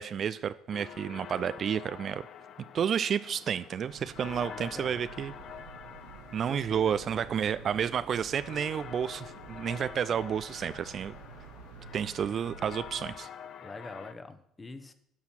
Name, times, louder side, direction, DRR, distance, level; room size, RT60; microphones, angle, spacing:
voice 1, 0.0-2.2 2.7-5.3 6.3-11.1 11.9-13.3, right 8 dB, 45° right, 15 dB, 0.4 m, -31 dB
sound 1, 0.7-14.1, left 8 dB, 50° left, 0.6 m, -47 dB
sound 2, 3.9-13.1, right 6 dB, 70° right, 0.9 m, -50 dB
voice 2, 4.4-5.0 6.5-7.2 13.6-14.9, left 3 dB, 25° left, 10 dB, 1.1 m, -45 dB
12.5 x 5.6 x 6.0 m, 0.72 s
figure-of-eight pair, 55°, 0 cm